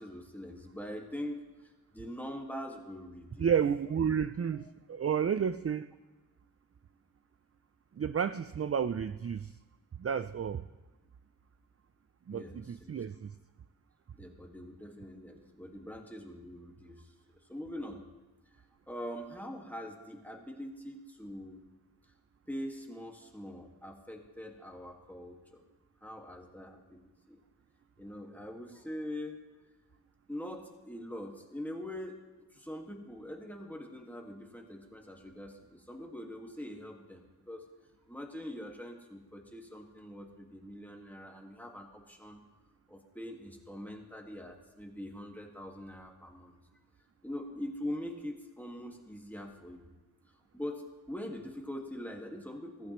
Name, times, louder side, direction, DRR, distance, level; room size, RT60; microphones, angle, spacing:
voice 1, 0.0-3.5 4.5-4.7 12.3-12.9 14.2-17.1 17.5-18.0 18.9-21.6 22.5-25.6 26.0-27.4 28.0-29.4 30.3-32.1 32.5-37.7 38.1-42.4 42.9-46.6 47.2-49.9 50.5-52.9, left 1 dB, 5° left, 1 dB, 1.8 m, -43 dB
voice 2, 3.4-5.9 7.9-9.6 10.0-10.6 12.3-13.3, right 7 dB, 40° right, 12 dB, 0.4 m, -31 dB
15.5 x 14.5 x 3.1 m, 1.2 s
wide cardioid pair, 50°, 40 cm